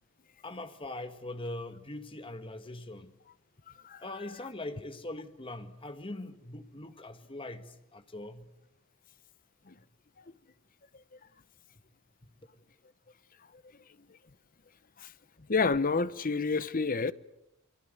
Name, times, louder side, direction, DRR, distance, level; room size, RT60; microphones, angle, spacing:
voice 1, 0.4-3.1 4.0-8.5, left 2 dB, 25° left, 1.8 m, -41 dB
voice 2, 15.5-17.1, left 4 dB, 40° left, 0.9 m, -28 dB
28.0 x 23.5 x 8.1 m
head